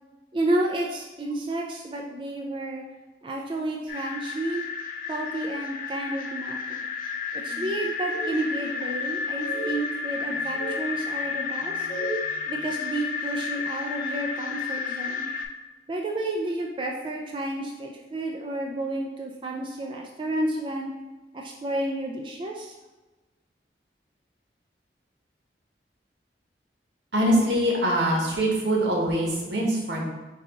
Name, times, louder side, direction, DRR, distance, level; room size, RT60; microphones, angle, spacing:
voice 1, 0.3-2.8 3.2-4.6 5.1-6.8 7.3-11.9 12.5-15.3 15.9-20.9 21.4-22.7, right 1 dB, 30° right, 0 dB, 0.3 m, -31 dB
sound 1, 3.9-15.4, left 5 dB, 50° left, 0.4 m, -32 dB
sound 2, 7.5-7.7 8.1-8.9 9.4-9.7 10.2-10.8 11.6-12.3, right 1 dB, ahead, 1.3 m, -35 dB
voice 2, 27.1-30.0, right 1 dB, 85° right, -2 dB, 1.1 m, -23 dB
4.7 x 2.9 x 3.5 m, 1.2 s
head